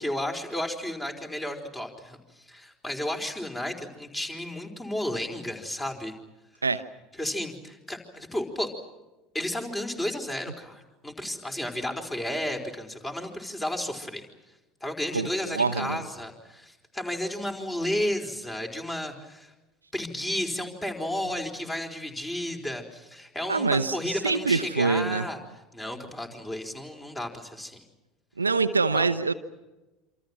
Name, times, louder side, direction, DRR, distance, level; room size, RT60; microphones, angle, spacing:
voice 1, 0.0-6.1 7.2-8.7 9.3-14.2 14.8-19.5 19.9-25.4 25.7-27.8 28.9-29.1, left 1 dB, 15° left, 4 dB, 4.6 m, -33 dB
voice 2, 15.1-16.0 23.5-25.3 28.4-29.3, right 4 dB, 85° right, 11 dB, 0.8 m, -25 dB
27.5 x 27.0 x 6.0 m, 1.0 s
figure-of-eight pair, 70°, 0 cm